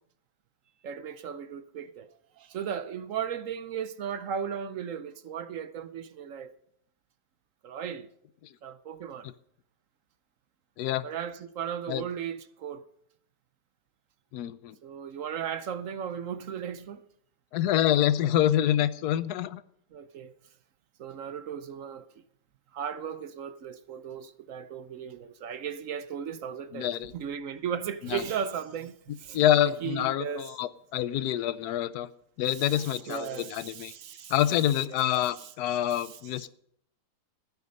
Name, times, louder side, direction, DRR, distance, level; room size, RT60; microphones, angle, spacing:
voice 1, 0.8-2.1 2.4-6.5 7.6-8.1 8.6-9.3 11.0-12.8 14.8-17.0 19.9-20.3 21.0-22.1 22.7-30.5 32.5-34.3 34.9-35.5 35.9-36.2, right 8 dB, 60° right, 0.9 m, -36 dB
voice 2, 14.3-14.7 17.5-19.6 26.7-27.1 28.0-28.2 29.3-32.1 32.4-33.9 34.3-36.5, left 12 dB, 75° left, 1.2 m, -26 dB
15.0 x 9.6 x 5.3 m
omnidirectional pair, 1.8 m